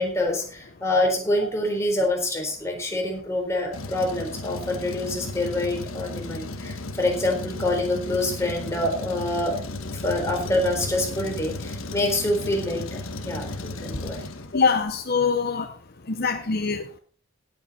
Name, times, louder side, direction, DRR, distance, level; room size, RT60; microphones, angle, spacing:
voice 1, 0.0-9.5 9.9-14.2, left 1 dB, 15° left, 3.9 m, -26 dB
Truck, 3.7-14.9, left 2 dB, 85° left, 1.4 m, -35 dB
voice 2, 14.5-15.7 16.1-17.0, left 5 dB, 50° left, 0.8 m, -23 dB
17.0 x 8.2 x 4.2 m
head